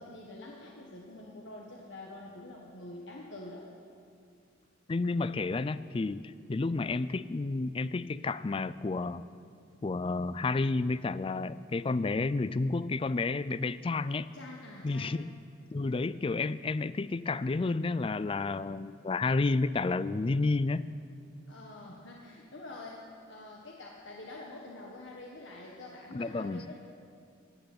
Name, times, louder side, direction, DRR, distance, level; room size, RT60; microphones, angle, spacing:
voice 1, 0.0-3.6 14.3-15.2 21.5-26.8, left 2 dB, 60° left, -2 dB, 1.4 m, -46 dB
voice 2, 4.9-9.2 9.8-14.3 14.8-15.4 15.7-20.9 26.1-26.7, left 3 dB, 25° left, 15 dB, 0.3 m, -31 dB
16.0 x 9.3 x 8.6 m, 2.3 s
head